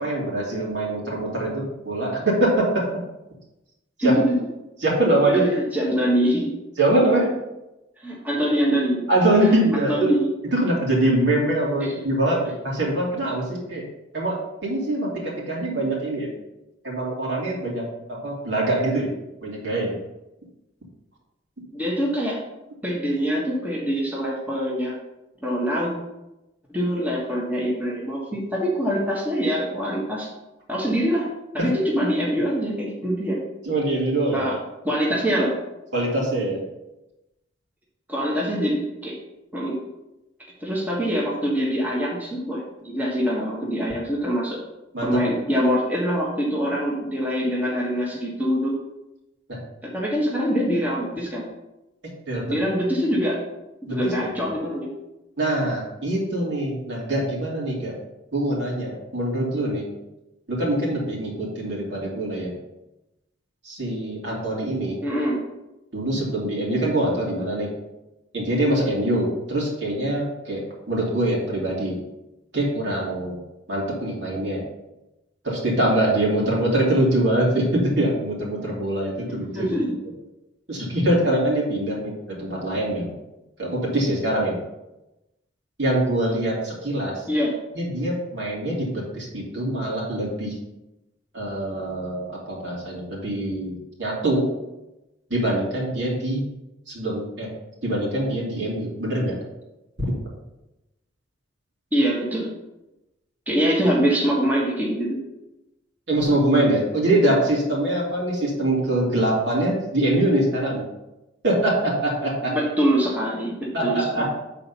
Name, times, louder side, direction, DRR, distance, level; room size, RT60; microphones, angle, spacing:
voice 1, 0.0-2.8 4.0-4.2 4.8-5.5 6.8-7.3 9.1-10.1 10.5-13.9 14.1-16.3 16.8-19.1 19.4-20.0 33.6-34.5 35.9-36.6 44.9-45.2 49.5-49.6 52.3-52.6 53.9-54.5 55.4-57.9 58.3-59.9 60.5-62.5 63.6-65.0 65.9-67.7 68.3-72.0 72.5-73.4 73.7-74.6 75.4-79.7 80.7-83.1 83.6-84.6 85.8-87.3 87.7-90.6 91.3-94.5 95.3-96.4 96.9-97.5 97.8-99.4 100.0-100.1 106.1-110.8 111.4-112.6 113.7-114.2, right 1 dB, 65° right, -4 dB, 2.8 m, -23 dB
voice 2, 4.0-4.3 5.3-6.5 8.0-9.0 9.4-10.3 11.8-11.9 21.7-22.4 22.8-24.9 25.4-25.9 26.7-30.3 30.7-31.3 31.5-33.4 34.3-34.6 34.8-35.5 38.1-39.2 39.5-39.8 40.6-44.6 45.0-48.8 49.8-51.4 52.5-53.4 53.9-54.9 65.0-65.4 79.5-80.0 87.3-87.5 101.9-102.5 103.5-105.2 112.5-114.2, equal, 10° right, -5 dB, 1.5 m, -24 dB
7.9 x 4.2 x 5.5 m, 0.96 s
head